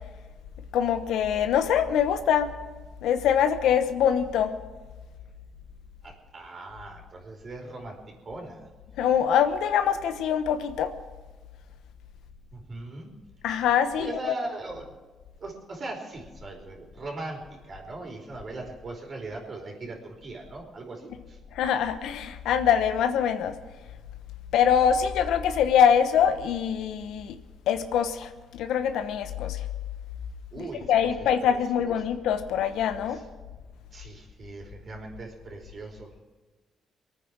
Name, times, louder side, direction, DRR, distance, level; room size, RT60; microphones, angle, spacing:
voice 1, 0.7-2.5 3.0-4.5 9.0-10.9 13.4-14.1 21.5-23.5 24.5-27.4 27.7-29.6 30.6-33.2, left 8 dB, 85° left, 9 dB, 1.1 m, -24 dB
voice 2, 6.0-8.7 12.5-13.1 14.0-14.9 15.4-21.4 30.5-31.9 33.1-33.3 33.9-36.1, right 2 dB, 45° right, 1 dB, 4.7 m, -40 dB
23.0 x 9.3 x 6.2 m, 1.3 s
cardioid pair, 90°, 0 cm